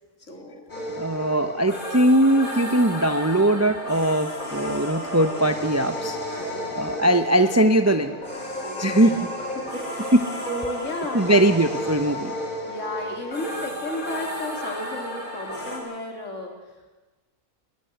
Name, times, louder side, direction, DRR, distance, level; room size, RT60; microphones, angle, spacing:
voice 1, 0.3-0.6 6.5-7.1 8.6-10.1 10.5-11.4 12.7-16.5, left 1 dB, 55° left, 2 dB, 3.9 m, -34 dB
sound 1, 0.7-15.8, left 1 dB, 30° left, 5.2 m, -33 dB
voice 2, 1.0-8.2 8.8-9.3 10.1-10.2 11.1-12.3, right 1 dB, 15° right, 8 dB, 0.7 m, -21 dB
21.0 x 19.5 x 8.1 m, 1.2 s
omnidirectional pair, 1.6 m